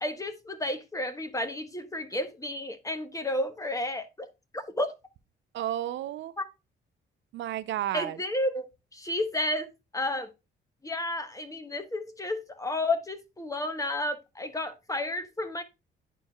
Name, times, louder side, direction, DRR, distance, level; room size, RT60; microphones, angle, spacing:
voice 1, 0.0-4.3 4.5-4.9 6.4-6.5 7.9-10.3 10.8-15.6, left 1 dB, 15° left, 1.1 m, -32 dB
voice 2, 5.5-6.3 7.3-8.2, right 12 dB, 70° right, 0.5 m, -32 dB
10.5 x 4.5 x 2.3 m
cardioid pair, 90°, 20 cm